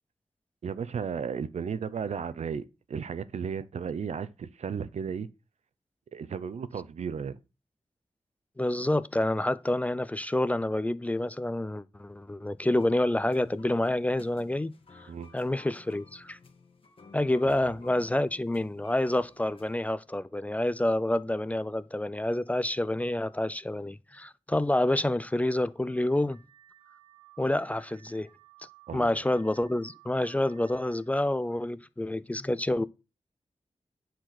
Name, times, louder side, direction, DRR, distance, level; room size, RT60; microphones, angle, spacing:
voice 1, 0.6-5.3 6.1-7.4 15.1-15.3 17.4-17.7 28.9-29.2, right 6 dB, 85° right, 0.7 m, -34 dB
voice 2, 8.6-14.7 15.0-16.4 17.1-26.4 27.4-28.3 28.9-32.9, left 1 dB, 15° left, 0.4 m, -28 dB
sound 1, 12.6-19.8, left 4 dB, 55° left, 1.7 m, -55 dB
Car / Alarm, 25.6-31.1, right 14 dB, 60° right, 1.3 m, -58 dB
10.0 x 4.4 x 5.9 m
wide cardioid pair, 135°, 11 cm